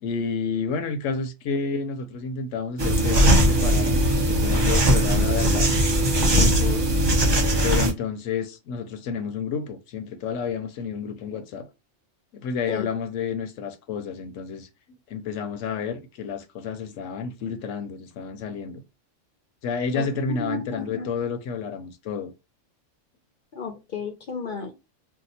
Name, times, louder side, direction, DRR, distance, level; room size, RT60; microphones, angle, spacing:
voice 1, 0.0-4.0 4.3-5.7 7.6-11.7 12.3-14.7 15.1-18.8 19.6-22.3, left 5 dB, 85° left, 1.0 m, -30 dB
sound 1, 2.8-7.9, equal, 30° right, 0.5 m, -19 dB
voice 2, 6.3-7.0 12.7-12.9 19.9-20.1 20.5-21.1 23.5-24.7, left 5 dB, 55° left, 0.6 m, -33 dB
2.8 x 2.1 x 4.0 m
omnidirectional pair, 1.3 m